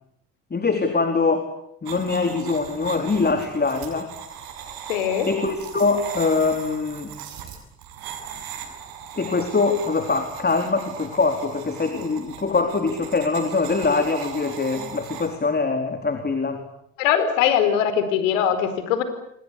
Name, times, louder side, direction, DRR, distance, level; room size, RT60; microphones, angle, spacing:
voice 1, 0.5-1.5 1.8-4.1 5.3-7.1 9.1-16.6, left 4 dB, 25° left, 7 dB, 4.2 m, -23 dB
sound 1, 1.9-15.3, right 8 dB, 65° right, 7.9 m, -38 dB
voice 2, 4.9-5.3 17.0-19.0, left 9 dB, 80° left, 11 dB, 4.8 m, -21 dB
28.5 x 24.5 x 8.4 m, 0.73 s
hypercardioid pair, 65°, 38 cm